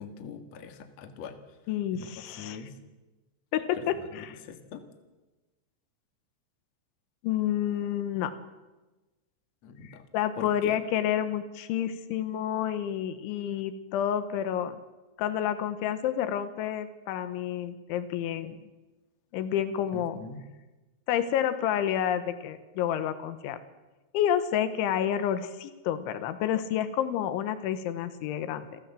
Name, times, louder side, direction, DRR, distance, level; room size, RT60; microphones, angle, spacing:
voice 1, 0.0-1.4 1.9-2.8 3.8-4.8 9.6-10.0 10.4-10.8 19.9-20.4, left 6 dB, 50° left, 7 dB, 2.4 m, -43 dB
voice 2, 1.7-2.6 3.5-4.3 7.2-8.3 9.8-14.8 15.2-18.6 19.3-20.2 21.1-23.6 24.1-28.8, left 10 dB, 85° left, 11 dB, 3.6 m, -29 dB
28.0 x 15.5 x 7.6 m, 1.2 s
omnidirectional pair, 5.3 m